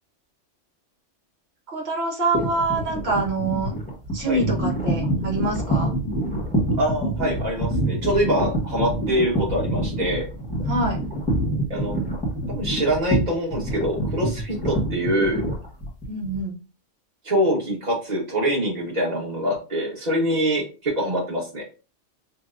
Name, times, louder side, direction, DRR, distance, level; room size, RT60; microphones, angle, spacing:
voice 1, 1.7-3.7 4.1-5.9 10.7-11.0 16.1-16.6, right 2 dB, 60° right, 0 dB, 1.4 m, -25 dB
sound 1, 2.3-16.4, right 1 dB, 5° left, 1.0 m, -26 dB
voice 2, 6.8-10.3 11.7-11.9 12.5-15.4 17.2-21.6, equal, 35° right, -2 dB, 1.4 m, -24 dB
5.2 x 2.2 x 2.5 m, 0.33 s
omnidirectional pair, 1.2 m